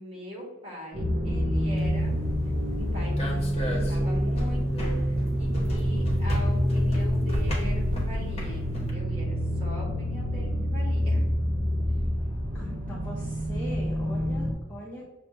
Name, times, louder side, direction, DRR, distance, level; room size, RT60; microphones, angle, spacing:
voice 1, 0.0-2.1 2.8-5.0 5.3-11.2 11.8-12.0, left 1 dB, 30° right, -4 dB, 1.4 m, -41 dB
sound 1, 0.9-14.5, equal, 50° right, 1.0 m, -27 dB
sound 2, 1.8-8.9, equal, 30° left, 1.0 m, -34 dB
voice 2, 12.5-15.1, equal, 10° left, -6 dB, 0.7 m, -41 dB
6.4 x 2.4 x 2.9 m, 1.1 s
head